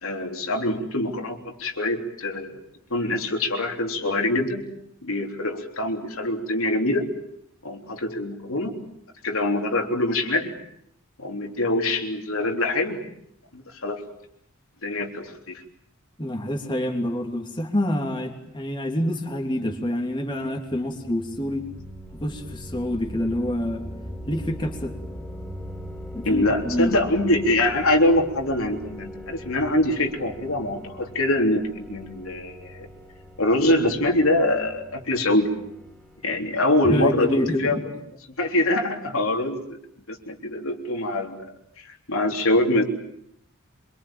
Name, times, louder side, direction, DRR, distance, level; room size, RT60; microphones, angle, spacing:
voice 1, 0.0-2.6 2.9-4.6 5.0-7.0 7.6-8.7 9.2-10.5 11.2-13.0 13.5-14.0 14.8-15.6 26.2-32.9 33.4-35.5 36.2-37.8 38.4-39.8 40.1-41.4 41.8-42.8, left 1 dB, 70° left, 3 dB, 3.7 m, -24 dB
voice 2, 16.2-21.7 22.1-23.8 24.3-24.9 26.1-26.9 36.9-37.8, left 1 dB, 20° left, 3 dB, 3.1 m, -27 dB
sound 1, 20.6-37.0, equal, 5° left, 5.0 m, -40 dB
26.0 x 24.5 x 9.0 m, 0.72 s
head